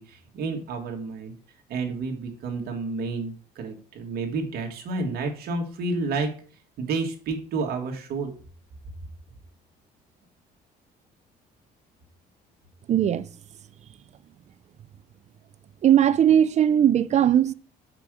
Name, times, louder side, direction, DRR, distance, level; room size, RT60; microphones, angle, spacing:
voice 1, 0.0-1.3 1.7-6.3 6.8-8.3, right 3 dB, 65° right, 2.0 m, -30 dB
voice 2, 12.9-13.3 15.8-17.5, right 10 dB, 40° right, 0.5 m, -19 dB
5.9 x 5.0 x 6.2 m
cardioid pair, 110°, 17 cm